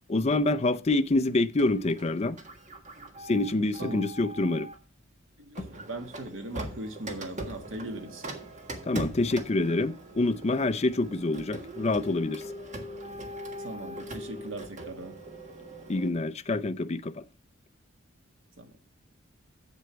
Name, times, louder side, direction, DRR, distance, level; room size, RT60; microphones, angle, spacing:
voice 1, 0.1-2.4 3.3-4.7 8.9-12.4 15.9-17.2, left 2 dB, 35° left, 0.5 m, -26 dB
Printer, 1.6-4.8 5.5-16.1, right 1 dB, 40° right, 1.6 m, -41 dB
voice 2, 5.4-8.2 13.6-15.1 18.6-18.7, right 1 dB, 70° right, 1.8 m, -39 dB
8.2 x 7.8 x 4.6 m
head